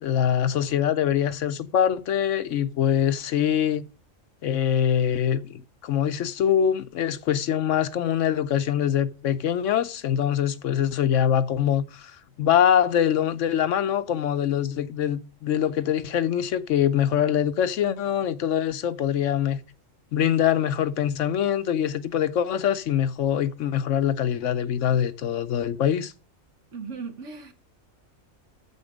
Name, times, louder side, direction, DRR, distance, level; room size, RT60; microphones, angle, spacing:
voice 1, 0.0-3.8 4.4-19.6 20.1-26.1, left 9 dB, 70° left, 1.0 m, -24 dB
voice 2, 26.7-27.5, right 5 dB, 65° right, 1.5 m, -37 dB
9.4 x 7.3 x 5.0 m
omnidirectional pair, 1.4 m